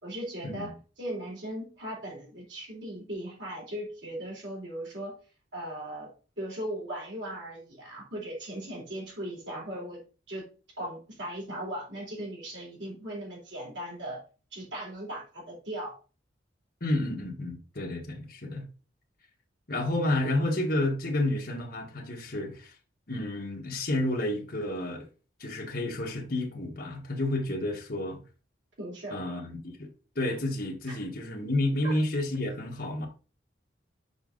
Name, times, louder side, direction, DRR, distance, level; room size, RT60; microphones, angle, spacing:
voice 1, 0.0-5.2 5.5-6.1 6.4-10.0 10.3-10.5 10.8-14.2 14.5-15.9 28.8-29.4 30.9-31.0 31.8-31.9, right 1 dB, 65° right, 3.8 m, -38 dB
voice 2, 16.8-18.7 19.7-22.7 23.1-25.1 25.4-28.2 29.1-33.1, left 1 dB, 50° left, 1.5 m, -30 dB
7.0 x 4.8 x 3.9 m
head